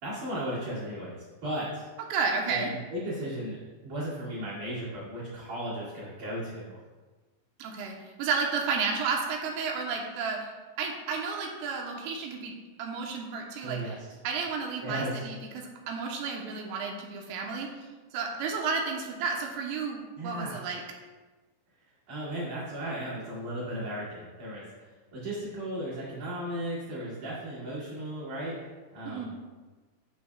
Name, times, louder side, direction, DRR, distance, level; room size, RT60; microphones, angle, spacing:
voice 1, 0.0-1.9 2.5-3.6 3.8-6.8 13.6-14.0 14.8-15.1 20.2-20.6 22.1-28.5 28.9-29.3, right 1 dB, 50° right, -10 dB, 2.7 m, -35 dB
voice 2, 2.1-2.7 7.6-10.5 10.8-12.5 12.8-14.0 14.3-17.7 18.1-20.8 29.1-29.3, right 5 dB, 90° right, 1 dB, 3.4 m, -32 dB
10.5 x 6.4 x 2.3 m, 1.3 s
omnidirectional pair, 5.7 m